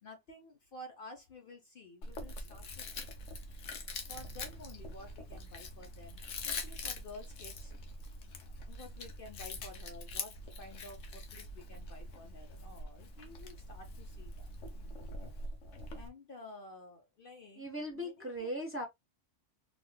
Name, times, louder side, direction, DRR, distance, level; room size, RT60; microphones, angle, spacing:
voice 1, 0.0-3.1 4.1-7.7 8.7-14.5 15.9-17.7 17.9-18.5, left 2 dB, 55° left, 0.8 m, -52 dB
Chewing mastication, 2.0-16.1, left 2 dB, 80° left, 1.2 m, -44 dB
sound 1, 4.1-9.9, right 7 dB, 70° right, 1.0 m, -59 dB
voice 2, 17.6-18.9, equal, 10° right, 0.9 m, -38 dB
4.2 x 2.3 x 2.2 m
omnidirectional pair, 1.2 m